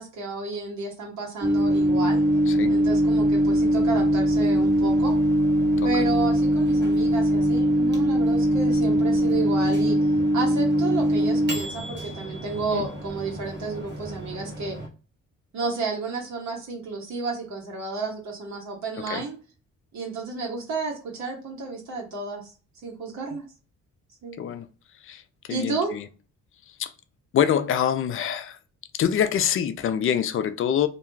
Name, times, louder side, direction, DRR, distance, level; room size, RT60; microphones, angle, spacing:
voice 1, 0.0-2.2 2.7-5.2 5.8-10.0 10.3-14.8 15.5-19.4 19.9-22.5 22.8-23.4 24.2-24.4 25.5-25.9, right 4 dB, 70° right, 1.0 m, -31 dB
Microwave oven, 1.4-14.9, equal, 35° right, 0.9 m, -22 dB
voice 2, 24.4-24.7 25.0-25.2 25.5-26.1 26.7-26.9 27.3-28.6 28.9-30.9, left 9 dB, 45° left, 0.4 m, -25 dB
2.3 x 2.2 x 3.1 m
cardioid pair, 90°, 30 cm